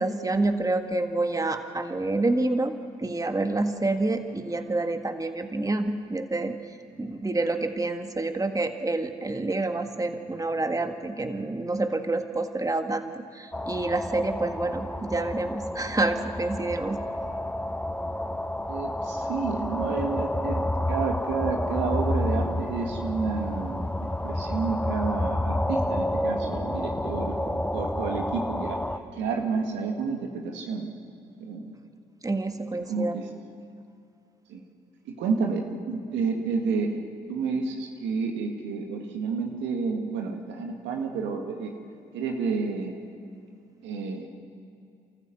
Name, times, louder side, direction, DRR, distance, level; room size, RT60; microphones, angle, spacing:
voice 1, 0.0-2.7 3.0-6.6 7.0-17.0 32.2-33.2, right 2 dB, 20° right, 6 dB, 1.7 m, -28 dB
sound 1, 13.5-29.0, left 1 dB, 5° left, 1.1 m, -30 dB
voice 2, 18.7-23.9 24.2-28.8 29.2-30.9 31.4-31.7 32.9-33.3 34.5-34.6 35.1-41.7 42.1-43.0 43.8-44.3, right 5 dB, 75° right, 3 dB, 2.0 m, -30 dB
29.0 x 14.0 x 7.8 m, 2.7 s
hypercardioid pair, 45°, 19 cm